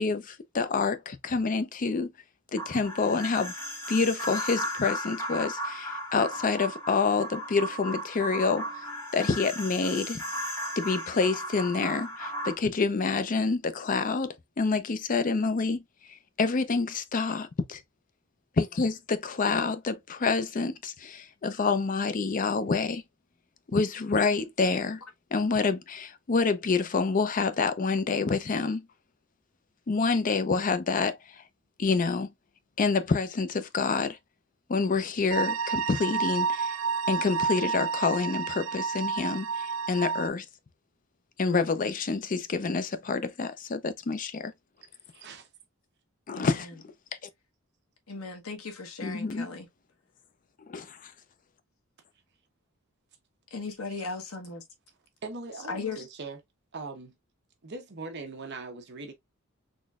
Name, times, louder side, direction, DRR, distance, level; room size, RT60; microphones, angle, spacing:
voice 1, 0.0-2.1 2.5-3.5 3.9-8.8 9.1-10.2 10.8-15.8 16.4-17.8 18.6-23.0 23.7-25.0 25.3-28.9 29.9-31.2 31.8-32.3 32.8-34.2 34.7-36.7 37.1-40.5 41.4-44.5 46.3-46.7 49.0-49.5 50.7-51.1, left 4 dB, 40° left, 0.5 m, -27 dB
sound 1, 2.6-12.5, equal, 10° left, 1.5 m, -36 dB
sound 2, 35.3-40.3, right 6 dB, 80° right, 0.4 m, -30 dB
voice 2, 45.1-45.5 55.2-56.4 56.7-57.1 57.6-59.1, right 3 dB, 55° right, 0.9 m, -40 dB
voice 3, 46.3-46.7 48.1-49.7 53.5-54.6 55.7-56.1, left 4 dB, 85° left, 1.1 m, -37 dB
4.0 x 3.1 x 2.3 m
head